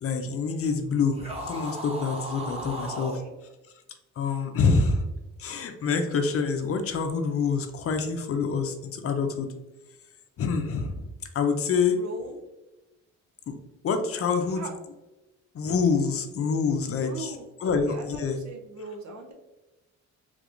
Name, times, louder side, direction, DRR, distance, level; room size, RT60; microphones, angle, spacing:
voice 1, 0.0-3.2 4.2-5.1 5.4-9.5 10.4-11.1 11.3-12.0 13.5-13.6 13.8-14.7 15.5-17.3 17.6-18.4, left 5 dB, 50° left, 6 dB, 0.5 m, -26 dB
sound 1, 1.1-3.2, right 1 dB, 20° right, 1.0 m, -36 dB
voice 2, 2.4-3.3 4.3-4.4 11.9-12.3 14.5-14.7 17.0-19.3, right 2 dB, 65° right, 3 dB, 0.8 m, -41 dB
3.4 x 3.3 x 2.5 m, 1.1 s
cardioid pair, 90°, 30 cm